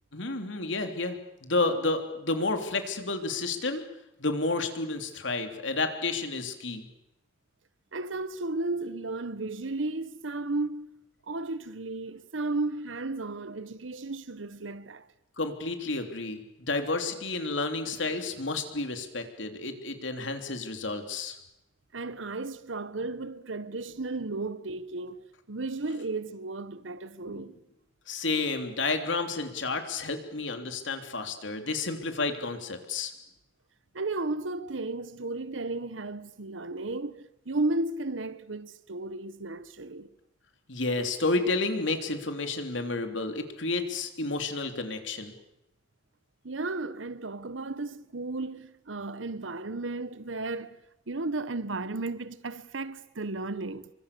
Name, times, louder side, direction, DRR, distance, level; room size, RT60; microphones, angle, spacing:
voice 1, 0.1-3.8 4.2-6.9 15.4-16.4 16.7-21.4 28.1-33.1 40.7-45.3, left 3 dB, 75° left, 3.4 m, -31 dB
voice 2, 7.9-15.1 21.9-27.6 33.9-40.1 46.4-53.9, right 2 dB, 90° right, 1.2 m, -34 dB
28.5 x 24.5 x 6.9 m
head